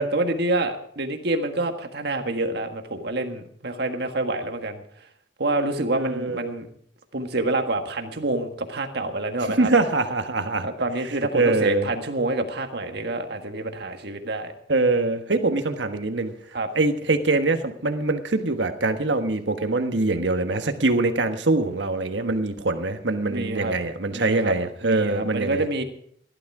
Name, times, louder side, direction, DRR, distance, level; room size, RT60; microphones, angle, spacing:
voice 1, 0.0-4.8 5.4-6.7 7.1-9.7 10.6-14.5 16.5-16.7 23.3-23.8 24.1-24.5 24.8-25.8, right 2 dB, 65° right, 6 dB, 1.6 m, -27 dB
voice 2, 5.9-6.5 9.6-10.7 11.3-11.9 14.7-16.3 16.7-25.6, right 2 dB, 85° right, 7 dB, 1.3 m, -23 dB
15.5 x 11.5 x 4.8 m, 0.64 s
head